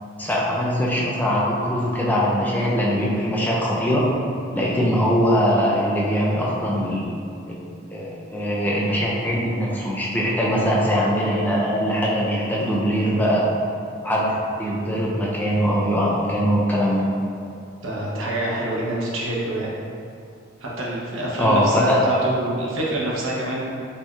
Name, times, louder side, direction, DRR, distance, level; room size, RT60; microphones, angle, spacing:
voice 1, 0.2-4.1 4.5-7.1 7.5-7.6 7.9-13.4 14.0-17.0 21.4-22.0, equal, 10° left, -5 dB, 0.4 m, -21 dB
voice 2, 17.8-19.7 20.6-23.6, right 1 dB, 80° right, -5 dB, 0.8 m, -26 dB
4.2 x 2.9 x 2.3 m, 2.5 s
head